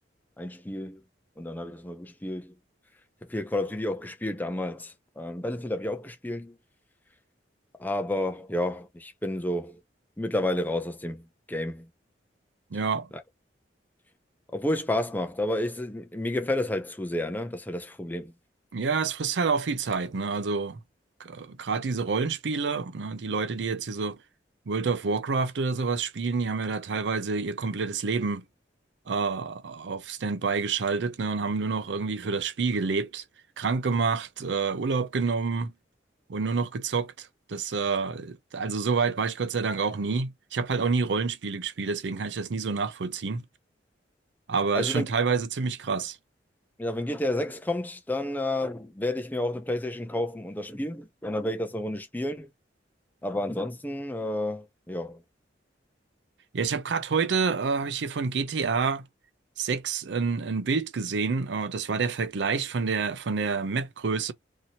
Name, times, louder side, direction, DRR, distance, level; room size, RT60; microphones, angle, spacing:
voice 1, 0.4-1.0 1.4-2.5 3.2-6.6 7.8-9.8 10.2-11.9 13.1-13.2 14.5-18.3 44.7-45.1 46.8-52.5 53.2-55.2, left 1 dB, 10° left, 0.5 m, -31 dB
voice 2, 12.7-13.1 18.7-20.8 21.2-24.2 24.7-28.4 29.1-33.2 33.6-35.7 36.3-43.4 44.5-46.2 56.5-59.0 59.6-64.3, right 4 dB, 70° right, 0.5 m, -28 dB
2.8 x 2.7 x 2.7 m
head